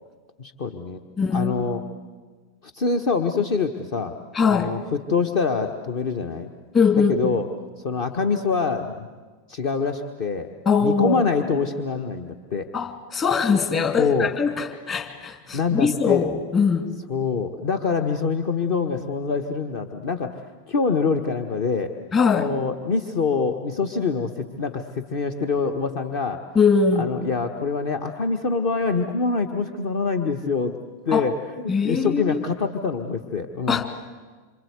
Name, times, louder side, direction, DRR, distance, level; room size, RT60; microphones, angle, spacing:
voice 1, 0.4-1.0 1.3-1.8 2.6-4.1 4.5-6.5 6.9-7.5 7.8-9.1 9.5-10.5 10.8-12.7 14.0-14.3 15.5-16.2 17.1-20.4 20.7-21.9 22.4-26.4 27.0-30.7 31.0-31.3 31.8-33.8, left 5 dB, 50° left, 6 dB, 1.5 m, -25 dB
voice 2, 1.2-1.5 4.3-4.8 6.7-7.3 10.6-11.2 12.7-16.9 22.1-22.5 26.5-27.1 31.1-31.3 31.7-32.4 33.7-33.8, left 5 dB, 25° left, 6 dB, 3.0 m, -21 dB
27.0 x 27.0 x 8.2 m, 1.4 s
figure-of-eight pair, 90°, 0 cm